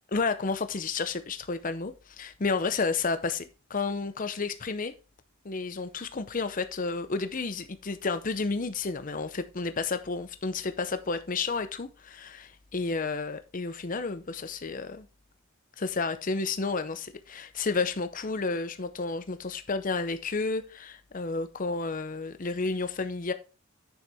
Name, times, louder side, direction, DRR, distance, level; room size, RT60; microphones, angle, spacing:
voice 1, 0.1-4.9 5.4-15.1 15.8-23.3, left 4 dB, 40° left, 0.7 m, -31 dB
9.1 x 6.8 x 3.5 m
head